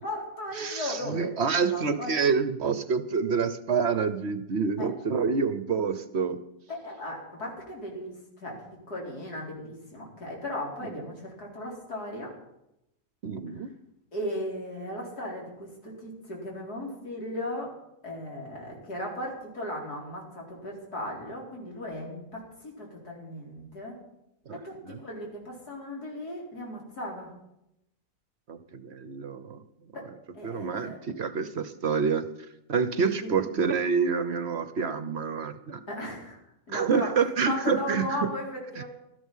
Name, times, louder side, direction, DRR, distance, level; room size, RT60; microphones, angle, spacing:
voice 1, 0.0-2.2 4.8-4.9 6.7-8.6 8.9-12.3 14.1-17.7 18.0-24.0 24.6-27.3 29.9-30.1 30.3-31.0 33.2-33.5 35.9-36.4 36.7-37.1 37.5-38.8, left 1 dB, 75° left, -2 dB, 4.6 m, -36 dB
voice 2, 0.6-6.4 10.8-10.9 13.2-13.7 24.5-25.0 28.5-29.6 30.4-32.3 32.7-35.8 36.7-38.3 38.8-38.9, right 5 dB, 50° right, 12 dB, 0.9 m, -27 dB
16.5 x 13.0 x 5.6 m, 0.84 s
omnidirectional pair, 1.7 m